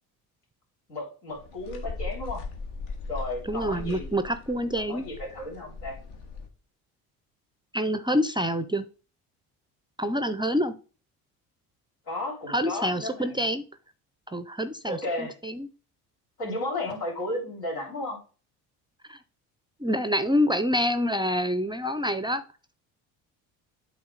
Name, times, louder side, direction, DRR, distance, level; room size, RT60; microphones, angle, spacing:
voice 1, 0.9-2.4 3.1-4.4 4.8-6.0 12.1-13.3 14.9-15.4 16.4-18.2, left 1 dB, 85° left, -1 dB, 3.3 m, -34 dB
sound 1, 1.3-6.5, left 4 dB, 65° left, 1.4 m, -39 dB
voice 2, 3.5-5.1 7.7-8.9 10.0-10.7 12.5-13.6 14.3-15.7 19.1-19.2 19.8-22.4, equal, 10° right, 12 dB, 0.4 m, -27 dB
8.6 x 3.6 x 3.8 m, 0.36 s
hypercardioid pair, 65°, 45 cm